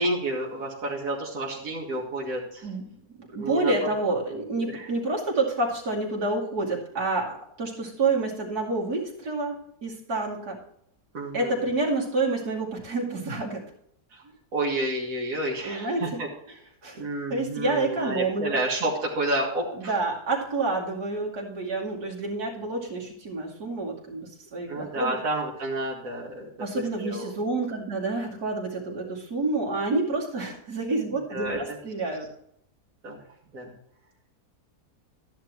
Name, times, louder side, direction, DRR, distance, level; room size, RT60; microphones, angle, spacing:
voice 1, 0.0-2.7 3.4-3.9 4.3-4.4 4.7-4.9 11.1-11.6 14.1-14.2 14.5-16.3 16.9-20.0 24.7-27.3 31.3-31.8 33.0-33.2 33.5-33.7, right 1 dB, 60° right, -4 dB, 2.4 m, -30 dB
voice 2, 2.6-2.9 3.3-10.6 11.3-13.6 15.6-16.2 16.8-17.0 17.3-18.6 19.8-25.2 26.6-32.3, right 3 dB, 75° right, -3 dB, 3.1 m, -28 dB
13.5 x 10.0 x 3.1 m, 0.71 s
omnidirectional pair, 1.7 m